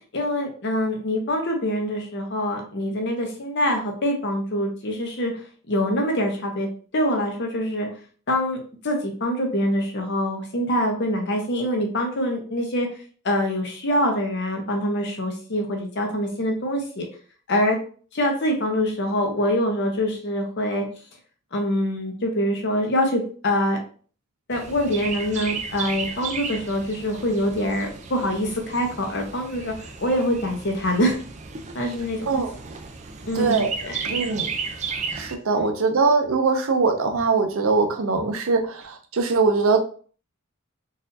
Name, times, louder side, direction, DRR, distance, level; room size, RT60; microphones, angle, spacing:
voice 1, 0.1-5.3 5.7-6.7 6.9-7.9 8.3-8.6 8.8-12.9 13.2-17.1 17.5-17.8 18.1-20.9 21.5-23.8 24.5-29.7 30.0-31.2 31.7-32.3 33.2-34.0 35.6-35.7, equal, 55° left, 2 dB, 0.9 m, -24 dB
Chirp tweet, 24.5-35.3, right 5 dB, 35° right, 0.4 m, -34 dB
voice 2, 33.3-33.7 34.0-34.5 35.1-39.8, right 4 dB, 75° right, 4 dB, 0.6 m, -22 dB
4.1 x 2.6 x 2.7 m, 0.42 s
head